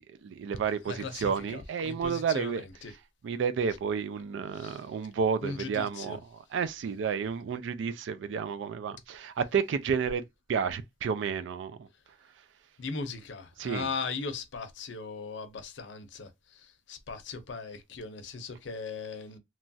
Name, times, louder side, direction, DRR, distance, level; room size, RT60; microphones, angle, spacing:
voice 1, 0.0-2.6 3.2-11.9 13.6-13.9, right 6 dB, 85° right, 0.3 m, -31 dB
voice 2, 0.9-2.9 4.5-4.8 5.4-6.2 12.8-19.4, left 4 dB, 80° left, 0.6 m, -38 dB
3.0 x 2.3 x 2.6 m
head